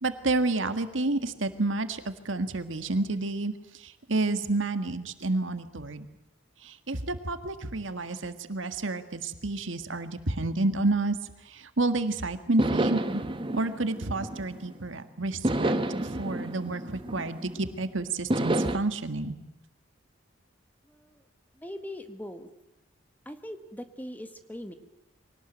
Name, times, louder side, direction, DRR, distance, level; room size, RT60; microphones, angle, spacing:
voice 1, 0.0-3.5 3.8-6.1 6.6-11.2 11.5-15.8 16.0-19.4, right 2 dB, 75° right, 9 dB, 1.8 m, -30 dB
sound 1, 12.6-14.8 15.4-17.7 18.3-18.8, right 1 dB, 25° right, 1.2 m, -29 dB
voice 2, 20.9-21.2 21.5-22.5 23.2-24.7, left 1 dB, 10° left, 8 dB, 1.7 m, -41 dB
24.0 x 18.5 x 9.1 m, 0.88 s
head